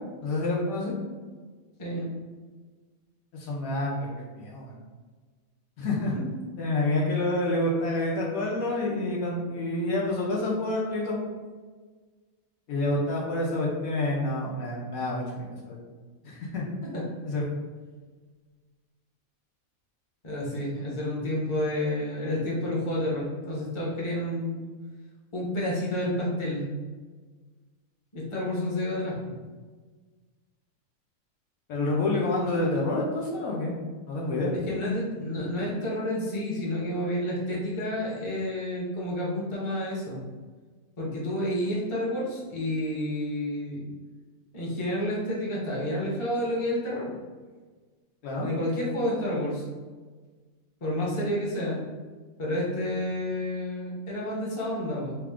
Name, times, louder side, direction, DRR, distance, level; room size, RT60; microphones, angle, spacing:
voice 1, 0.2-1.0 3.3-4.7 5.8-6.1 6.6-11.2 12.7-15.8 16.2-16.6 17.2-17.4 31.7-33.8 34.1-34.5 48.2-48.5, left 2 dB, 90° left, -3 dB, 1.2 m, -28 dB
voice 2, 1.8-2.1 6.1-6.2 16.9-17.0 20.2-24.7 25.3-26.7 28.1-29.2 34.7-40.2 41.0-43.9 44.5-47.1 48.4-49.6 50.8-51.8 52.4-55.1, left 1 dB, 25° left, -5 dB, 0.7 m, -30 dB
3.3 x 2.3 x 3.5 m, 1.4 s
omnidirectional pair, 1.5 m